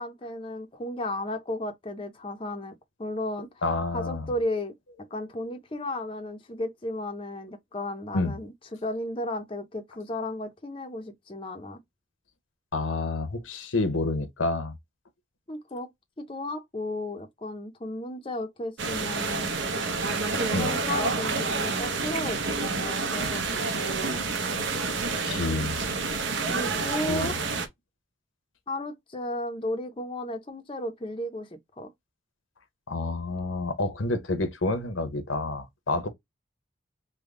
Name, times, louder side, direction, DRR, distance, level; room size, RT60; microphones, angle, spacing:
voice 1, 0.0-3.5 3.9-4.7 5.1-11.8 15.5-15.9 16.2-19.6 20.4-23.4 23.7-24.3 26.5-27.4 28.7-31.9, left 1 dB, 25° left, 0.5 m, -34 dB
voice 2, 3.6-4.3 8.1-8.4 12.7-14.7 20.5-20.7 25.2-25.8 27.1-27.3 32.9-36.1, left 2 dB, 90° left, 0.8 m, -28 dB
sound 1, 18.8-27.7, right 4 dB, 70° right, 0.7 m, -28 dB
3.5 x 2.1 x 3.6 m
head